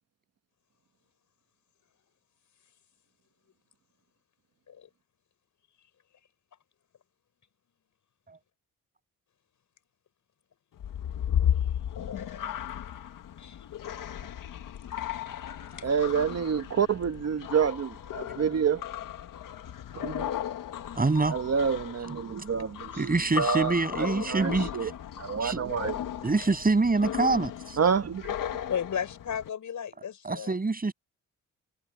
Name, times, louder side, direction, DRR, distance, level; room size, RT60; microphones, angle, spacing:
sound 1, 10.8-29.5, left 10 dB, 80° left, 1.9 m, -35 dB
voice 1, 15.8-18.8 19.9-20.3 21.3-24.9 25.2-26.0 27.8-28.3, right 7 dB, 50° right, 1.2 m, -28 dB
voice 2, 20.9-21.4 23.0-24.9 25.4-25.6 26.2-27.8 30.2-30.9, right 3 dB, 25° right, 7.5 m, -26 dB
voice 3, 28.7-30.5, left 8 dB, 65° left, 6.7 m, -34 dB
cardioid pair, 90°, 32 cm